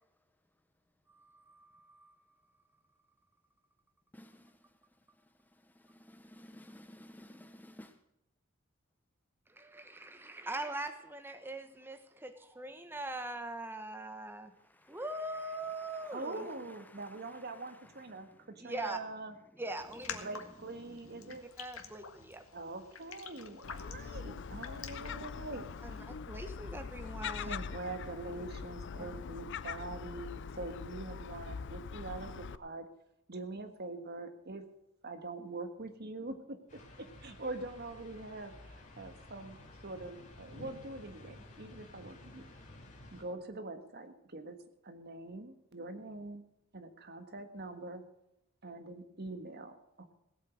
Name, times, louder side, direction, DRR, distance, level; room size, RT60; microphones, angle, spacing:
voice 1, 1.1-2.2 9.5-14.5 14.9-16.5 18.6-19.0 19.6-20.3 21.6-22.4 25.8-27.6 28.4-28.5 29.0-29.1, right 2 dB, 10° right, 1.1 m, -42 dB
voice 2, 4.1-4.5 5.6-8.0 14.7-15.0 15.6-16.2 16.9-17.8 18.1-18.3 20.9-21.4, left 1 dB, 10° left, 0.8 m, -55 dB
voice 3, 16.1-19.3 20.2-21.5 22.5-26.1 27.4-32.8 33.3-34.6 35.0-38.5 39.0-39.6 39.8-42.4 43.1-44.6 44.8-46.4 46.7-48.0 48.6-50.1, right 2 dB, 50° right, 1.6 m, -44 dB
Raindrop, 19.8-26.0, left 6 dB, 85° left, 1.7 m, -49 dB
Gull seagull, 23.6-32.6, left 6 dB, 60° left, 0.5 m, -43 dB
sound 1, 36.7-43.2, left 1 dB, 40° left, 4.1 m, -53 dB
17.5 x 8.5 x 6.2 m
head